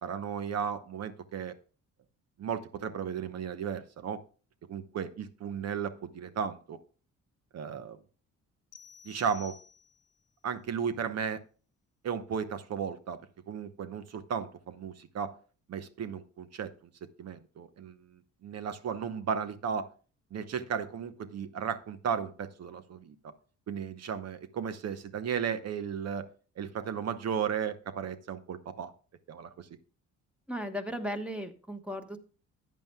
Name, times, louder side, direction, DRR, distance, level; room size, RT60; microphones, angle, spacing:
voice 1, 0.0-1.5 2.4-4.2 4.7-6.8 7.5-8.0 9.0-9.6 10.4-11.4 12.0-13.2 13.5-15.3 15.7-16.7 17.2-18.0 18.4-19.9 20.3-23.3 23.7-26.3 26.6-28.9 29.3-29.7, right 7 dB, 60° right, 11 dB, 0.9 m, -35 dB
sound 1, 8.7-10.2, left 6 dB, 55° left, 0.9 m, -53 dB
voice 2, 30.5-32.2, equal, 5° right, 6 dB, 1.2 m, -36 dB
14.0 x 9.2 x 2.3 m, 0.38 s
cardioid pair, 90°, 30 cm